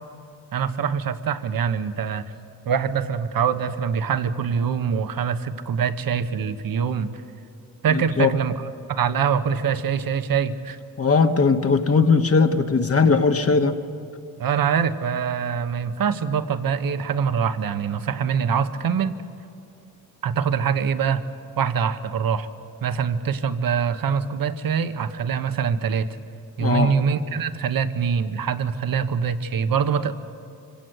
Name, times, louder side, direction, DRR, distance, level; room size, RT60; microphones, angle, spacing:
voice 1, 0.5-2.2 2.7-7.1 7.8-8.5 8.9-10.8 14.4-19.2 20.2-21.2 21.6-22.5 22.8-26.2 26.6-30.1, right 7 dB, 65° right, 11 dB, 1.2 m, -24 dB
voice 2, 7.9-8.3 11.0-13.8 26.6-26.9, left 4 dB, 40° left, 6 dB, 1.4 m, -19 dB
24.5 x 17.0 x 7.9 m, 2.7 s
cardioid pair, 70°, 37 cm